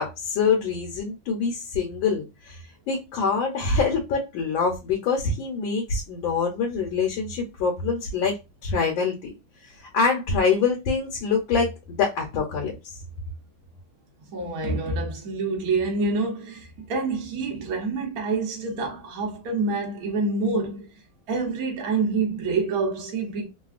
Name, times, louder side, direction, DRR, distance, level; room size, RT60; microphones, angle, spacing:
voice 1, 0.0-9.3 9.6-12.8, left 5 dB, 75° left, 1.3 m, -25 dB
voice 2, 14.3-20.9 21.3-23.4, right 3 dB, 55° right, 1.1 m, -27 dB
3.4 x 2.2 x 2.4 m
omnidirectional pair, 2.3 m